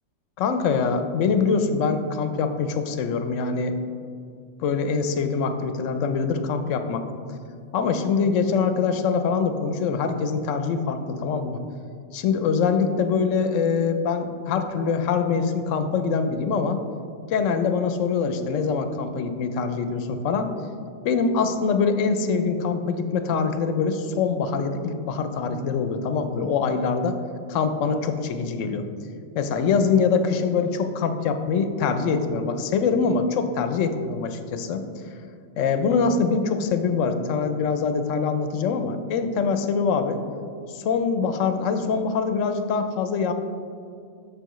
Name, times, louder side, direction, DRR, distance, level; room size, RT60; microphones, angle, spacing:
voice 1, 0.4-3.7 4.6-7.0 7.7-11.6 12.1-16.8 17.3-20.5 21.0-27.2 27.5-28.9 29.3-34.8 35.6-40.2 40.7-43.3, left 5 dB, 85° left, 8 dB, 0.9 m, -24 dB
6.8 x 6.7 x 3.0 m, 2.3 s
omnidirectional pair, 1.3 m